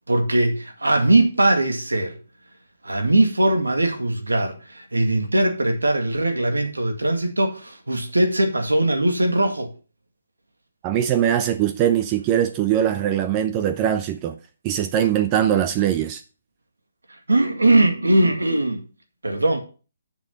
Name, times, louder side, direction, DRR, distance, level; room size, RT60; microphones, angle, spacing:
voice 1, 0.1-2.1 2.8-9.7 17.3-18.8 19.2-19.6, right 1 dB, 85° right, 2.1 m, -20 dB
voice 2, 10.8-14.3 14.6-16.2, right 10 dB, 25° right, 0.7 m, -21 dB
7.1 x 6.6 x 5.7 m
figure-of-eight pair, 140°, 0 cm